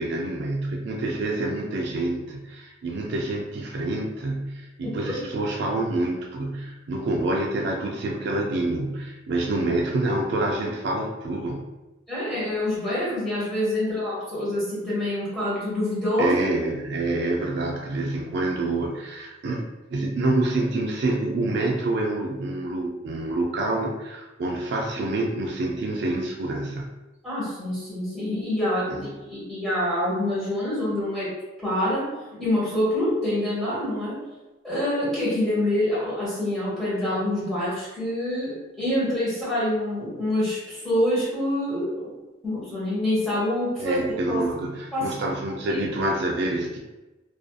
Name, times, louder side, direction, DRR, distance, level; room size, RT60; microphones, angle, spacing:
voice 1, 0.0-11.7 16.2-26.9 28.9-29.0 43.8-46.8, right 2 dB, 65° right, 1 dB, 0.4 m, -27 dB
voice 2, 4.8-5.2 12.1-16.4 27.2-31.3 31.6-34.2 34.6-42.1 42.4-44.0 44.3-44.4 44.9-45.1 45.7-45.8, left 1 dB, ahead, -10 dB, 1.2 m, -26 dB
2.5 x 2.4 x 2.2 m, 1.1 s
head